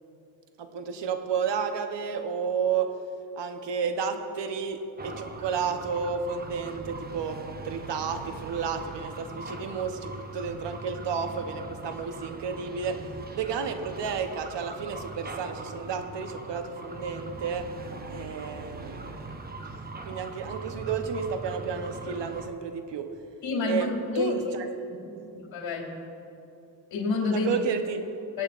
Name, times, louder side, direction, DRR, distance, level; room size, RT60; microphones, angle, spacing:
voice 1, 0.6-2.9 3.4-17.7 18.1-19.4 20.0-23.1 23.6-23.9 24.1-24.6 25.2-25.3 27.3-28.2, right 6 dB, 70° right, 7 dB, 1.0 m, -32 dB
sound 1, 5.0-22.5, right 2 dB, 20° right, 0.8 m, -41 dB
voice 2, 23.4-24.5 25.1-25.9 26.9-27.5 28.3-28.4, left 3 dB, 80° left, -1 dB, 2.6 m, -29 dB
22.5 x 8.7 x 2.5 m, 2.8 s
cardioid pair, 90°, 44 cm